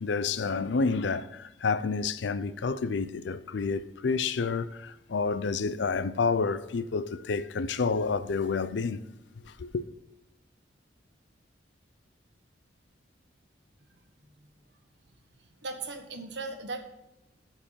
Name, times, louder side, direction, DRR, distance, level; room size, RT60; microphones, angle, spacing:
voice 1, 0.0-9.0 9.4-9.8, left 4 dB, 70° left, 0.5 m, -29 dB
voice 2, 15.6-16.8, right 3 dB, 70° right, 1.3 m, -37 dB
13.0 x 4.6 x 5.6 m
head